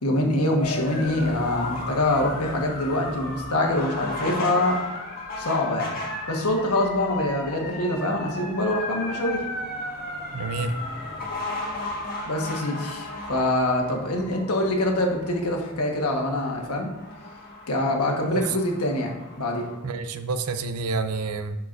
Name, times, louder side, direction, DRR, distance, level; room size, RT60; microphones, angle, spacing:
voice 1, 0.0-4.8 5.4-6.0 6.3-9.4 12.3-16.9 17.7-19.7, left 1 dB, 75° left, 1 dB, 1.3 m, -25 dB
sound 1, 0.6-19.8, left 2 dB, 40° left, 1.5 m, -35 dB
voice 2, 10.3-10.7 18.3-18.4 19.8-21.6, right 3 dB, 80° right, 9 dB, 0.5 m, -28 dB
10.5 x 4.7 x 2.6 m, 1.2 s
head